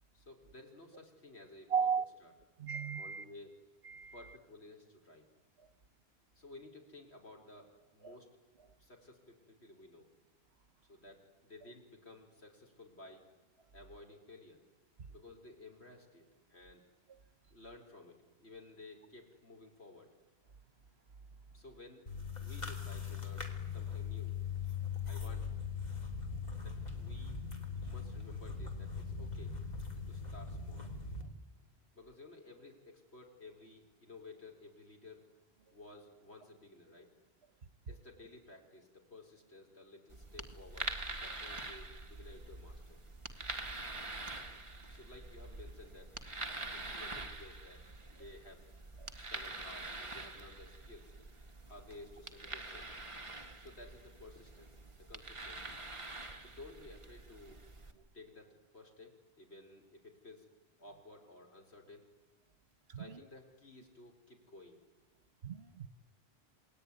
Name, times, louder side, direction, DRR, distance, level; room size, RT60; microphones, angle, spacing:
voice 1, 0.1-2.3 2.9-3.6 4.1-5.3 6.3-8.4 8.8-10.1 10.9-13.3 13.7-14.6 15.1-16.8 17.5-20.2 21.5-22.0 22.4-24.4 25.0-25.5 26.6-27.4 27.8-29.6 30.1-30.9 31.9-35.2 35.7-37.1 37.9-43.0 44.9-46.2 46.7-48.7 49.2-51.2 51.7-53.0 53.5-55.9 56.4-57.6 58.1-60.5 60.8-62.2 62.9-64.8, left 2 dB, 85° left, 4.5 m, -55 dB
voice 2, 1.7-2.0 2.6-3.2 3.9-4.1 65.4-65.9, right 6 dB, 80° right, 1.3 m, -34 dB
sound 1, 22.1-31.2, left 6 dB, 40° left, 3.1 m, -40 dB
sound 2, 40.1-57.9, right 2 dB, 30° right, 1.9 m, -45 dB
28.5 x 20.0 x 9.5 m
omnidirectional pair, 1.1 m